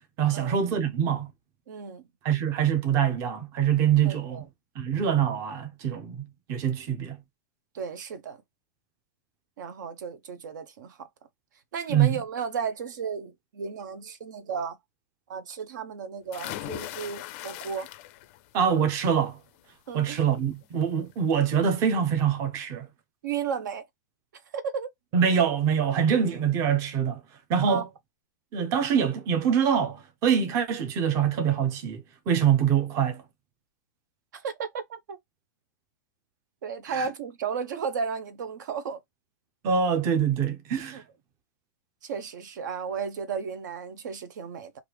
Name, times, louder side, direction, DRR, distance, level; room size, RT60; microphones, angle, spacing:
voice 1, 0.2-1.3 2.2-4.4 4.8-7.2 11.9-12.2 18.5-19.4 19.9-22.9 25.1-27.2 27.5-27.9 28.5-33.2 36.9-37.1 39.6-41.0, right 8 dB, 30° right, 0.6 m, -24 dB
voice 2, 1.7-2.0 4.0-4.5 7.7-8.4 9.6-11.1 11.7-14.8 15.3-17.9 19.9-20.2 23.2-23.9 24.5-24.9 27.7-27.8 34.3-35.2 36.6-39.0 40.9-41.0 42.0-44.8, right 6 dB, 70° right, 0.7 m, -34 dB
sound 1, 16.3-18.4 18.8-19.2 20.6-20.7 21.1-21.2, left 15 dB, 35° left, 0.4 m, -39 dB
3.2 x 2.5 x 3.3 m
supercardioid pair, 160°, 10 cm